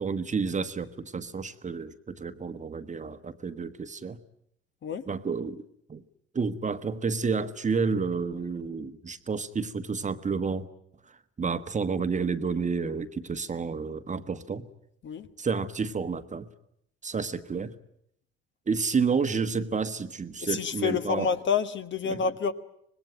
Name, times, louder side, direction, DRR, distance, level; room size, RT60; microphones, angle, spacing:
voice 1, 0.0-4.2 5.1-5.6 5.9-6.0 6.3-10.7 11.4-14.7 15.4-16.5 17.0-17.7 18.7-21.3 22.1-22.2, right 5 dB, 25° right, 11 dB, 1.3 m, -30 dB
voice 2, 20.4-22.5, left 6 dB, 40° left, 10 dB, 1.4 m, -28 dB
25.5 x 20.5 x 9.0 m, 0.74 s
figure-of-eight pair, 50°, 30 cm